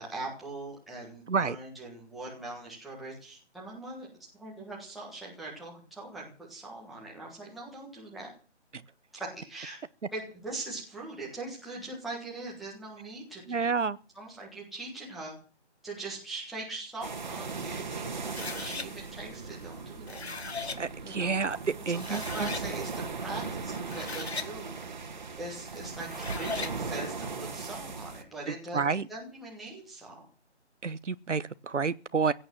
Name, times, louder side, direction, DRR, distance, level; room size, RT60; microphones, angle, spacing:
voice 1, 0.0-4.1 4.3-8.3 9.1-9.8 10.1-13.7 14.1-15.3 15.8-20.3 21.0-21.4 21.9-24.8 25.4-30.2, right 2 dB, ahead, 1.5 m, -41 dB
voice 2, 13.5-14.0 20.8-21.6 21.9-22.5 28.7-29.1 30.8-32.3, right 5 dB, 85° right, 1.1 m, -29 dB
sound 1, 17.0-28.2, right 4 dB, 40° right, 2.0 m, -38 dB
sound 2, 18.2-18.9 19.9-20.8 21.6-21.7 22.0-22.7 23.7-24.5 26.0-26.8, left 4 dB, 65° left, 1.9 m, -38 dB
16.5 x 9.2 x 7.6 m
figure-of-eight pair, 165°, 35 cm